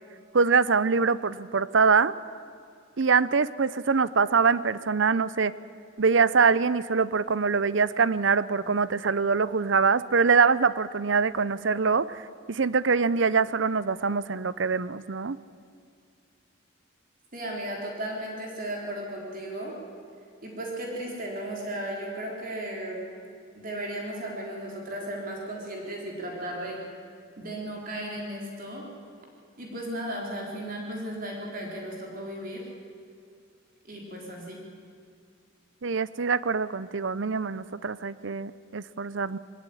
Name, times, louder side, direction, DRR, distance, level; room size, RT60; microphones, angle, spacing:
voice 1, 0.3-2.1 3.0-5.5 6.0-15.4 35.8-39.4, right 5 dB, 60° right, 17 dB, 0.6 m, -24 dB
voice 2, 17.3-19.8 20.4-23.0 23.6-26.8 27.4-28.8 29.6-32.7 33.8-34.6, right 1 dB, 40° right, -1 dB, 4.0 m, -35 dB
21.5 x 17.5 x 10.0 m, 2.3 s
head